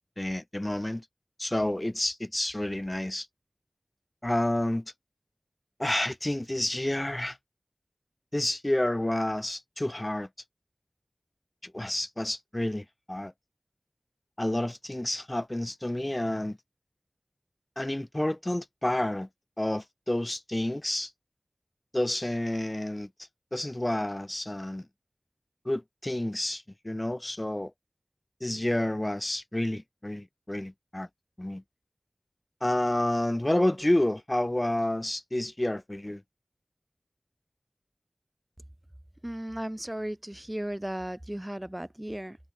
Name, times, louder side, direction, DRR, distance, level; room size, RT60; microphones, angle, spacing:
voice 1, 0.2-1.0 1.4-3.3 4.2-4.9 5.8-7.4 8.3-10.3 11.6-13.3 14.4-16.6 17.8-19.3 19.6-21.1 21.9-23.1 23.5-24.9 25.6-27.7 28.4-31.1 31.4-31.6 32.6-36.2, left 1 dB, 30° left, 1.5 m, -29 dB
voice 2, 39.2-42.4, right 1 dB, 20° right, 0.4 m, -35 dB
wide cardioid pair, 50°, 0 cm